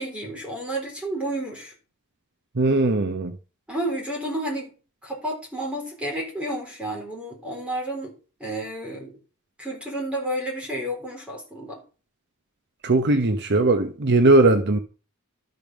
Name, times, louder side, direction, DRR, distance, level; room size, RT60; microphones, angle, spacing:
voice 1, 0.0-1.7 3.7-4.7 5.0-8.1 8.4-9.1 9.6-11.8, right 1 dB, 5° right, 3.9 m, -31 dB
voice 2, 2.6-3.3 12.8-14.8, right 2 dB, 50° right, 0.9 m, -19 dB
12.5 x 5.3 x 6.1 m
head